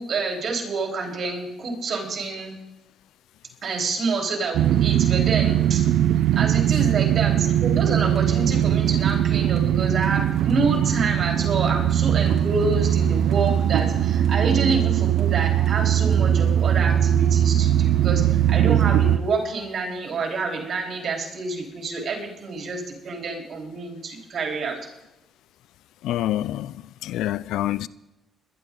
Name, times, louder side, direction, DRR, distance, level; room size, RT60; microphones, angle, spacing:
voice 1, 0.0-2.5 3.6-5.8 6.4-24.8, right 4 dB, 55° right, 3.9 m, -28 dB
sound 1, 4.5-19.2, right 10 dB, 80° right, 0.6 m, -20 dB
sound 2, 7.9-16.5, right 2 dB, 35° right, 3.2 m, -39 dB
voice 2, 26.0-26.8 27.0-27.9, left 13 dB, 85° left, 0.4 m, -26 dB
21.5 x 11.0 x 3.9 m
cardioid pair, 90°, 0 cm